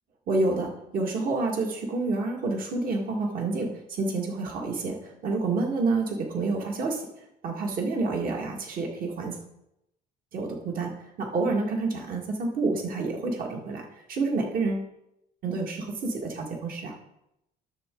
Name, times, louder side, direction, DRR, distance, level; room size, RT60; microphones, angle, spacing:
voice 1, 0.3-7.1 7.4-9.4 10.3-14.9 15.4-16.9, right 3 dB, 55° right, 0 dB, 1.9 m, -28 dB
11.5 x 6.7 x 3.8 m, 0.83 s
cardioid pair, 110°, 17 cm